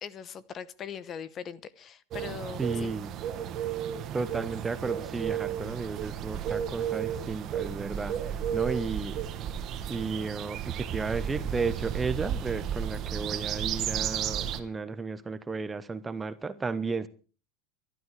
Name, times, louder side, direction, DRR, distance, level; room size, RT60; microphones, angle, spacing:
voice 1, 0.0-2.9, left 8 dB, 30° left, 0.9 m, -40 dB
sound 1, 2.1-14.6, right 9 dB, 40° right, 1.5 m, -33 dB
voice 2, 2.6-3.1 4.1-9.2 9.9-17.1, right 4 dB, 15° right, 0.8 m, -33 dB
19.5 x 12.5 x 4.7 m
supercardioid pair, 150°, 0 cm